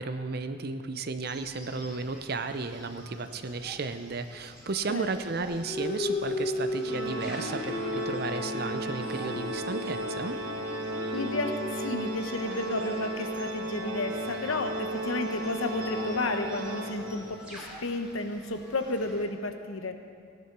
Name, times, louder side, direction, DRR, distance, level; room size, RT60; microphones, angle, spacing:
voice 1, 0.0-10.4, right 3 dB, 45° right, 9 dB, 0.6 m, -34 dB
sound 1, 1.2-19.2, equal, 5° right, 2.7 m, -50 dB
sound 2, 5.4-12.5, left 2 dB, 40° left, 1.5 m, -35 dB
Organ, 6.8-17.5, right 1 dB, 70° right, 2.0 m, -35 dB
voice 2, 11.1-19.9, left 2 dB, 80° left, 6 dB, 1.1 m, -32 dB
15.5 x 10.5 x 6.1 m, 2.3 s
head